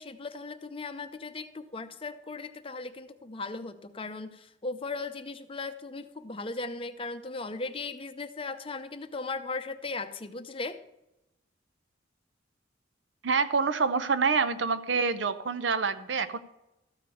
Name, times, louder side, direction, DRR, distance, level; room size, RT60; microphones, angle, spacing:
voice 1, 0.0-10.8, left 3 dB, 25° left, 9 dB, 0.6 m, -37 dB
voice 2, 13.2-16.4, right 5 dB, 65° right, 12 dB, 0.7 m, -27 dB
13.5 x 5.1 x 7.0 m, 0.91 s
head